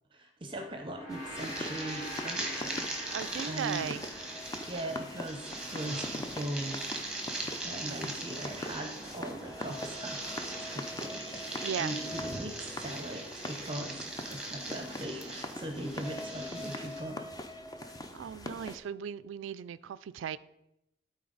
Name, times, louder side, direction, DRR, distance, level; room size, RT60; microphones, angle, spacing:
voice 1, 0.1-3.9 4.7-7.0 7.6-14.0 14.3-17.3, right 1 dB, 25° right, 4 dB, 0.6 m, -40 dB
Gong, 0.8-5.4, equal, 40° left, 2.2 m, -44 dB
sound 1, 1.1-18.8, left 1 dB, 20° left, 0.5 m, -43 dB
sound 2, 1.3-17.0, right 2 dB, 5° right, 1.1 m, -40 dB
voice 2, 3.1-4.0 11.6-12.0 18.1-20.4, right 8 dB, 80° right, 16 dB, 0.3 m, -37 dB
12.5 x 4.2 x 3.9 m, 0.86 s
head